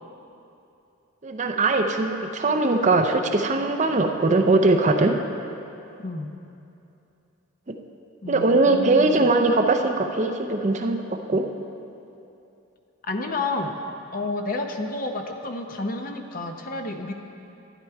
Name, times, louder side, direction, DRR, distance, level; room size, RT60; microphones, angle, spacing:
voice 1, 1.2-5.2 7.7-7.8 8.3-11.0 11.3-11.5, right 2 dB, 35° right, 5 dB, 0.5 m, -21 dB
voice 2, 8.2-9.3 13.0-13.7 14.1-17.1, left 2 dB, 40° left, 4 dB, 0.7 m, -30 dB
12.0 x 10.5 x 4.6 m, 2.8 s
head